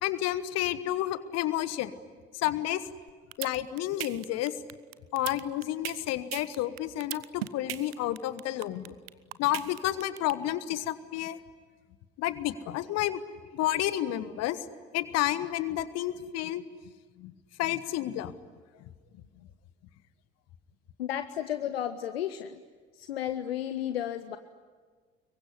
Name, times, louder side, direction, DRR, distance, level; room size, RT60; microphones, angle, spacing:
voice 1, 0.0-1.9 2.3-2.8 3.4-4.5 5.1-9.0 9.4-11.4 12.2-13.2 13.5-14.6 14.9-16.6 17.2-17.3 17.6-18.3, left 13 dB, 55° left, 15 dB, 1.3 m, -30 dB
sound 1, 3.1-10.3, right 14 dB, 75° right, 0.8 m, -37 dB
voice 2, 21.0-22.6 22.9-24.4, left 11 dB, 75° left, 11 dB, 0.8 m, -33 dB
25.5 x 23.0 x 9.8 m, 1.5 s
figure-of-eight pair, 50°, 30 cm